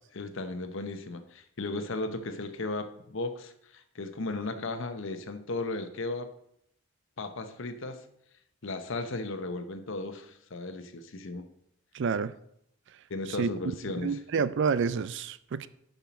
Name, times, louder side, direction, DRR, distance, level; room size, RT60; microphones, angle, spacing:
voice 1, 0.1-6.3 7.2-8.0 8.6-11.4 13.1-14.2, left 2 dB, 60° left, 0.9 m, -35 dB
voice 2, 11.9-12.3 13.4-13.5 13.9-15.7, right 5 dB, 55° right, 0.4 m, -28 dB
7.1 x 5.7 x 5.9 m
head